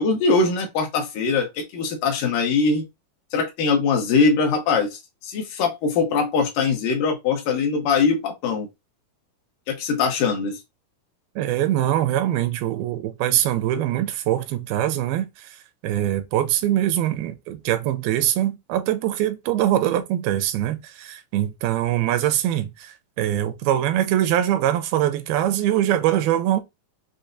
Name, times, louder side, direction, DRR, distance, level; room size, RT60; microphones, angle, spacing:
voice 1, 0.0-2.8 3.3-8.7 9.7-10.6, left 4 dB, 70° left, 2.7 m, -22 dB
voice 2, 11.4-26.6, right 12 dB, 85° right, 2.5 m, -23 dB
6.8 x 2.9 x 2.6 m
omnidirectional pair, 4.3 m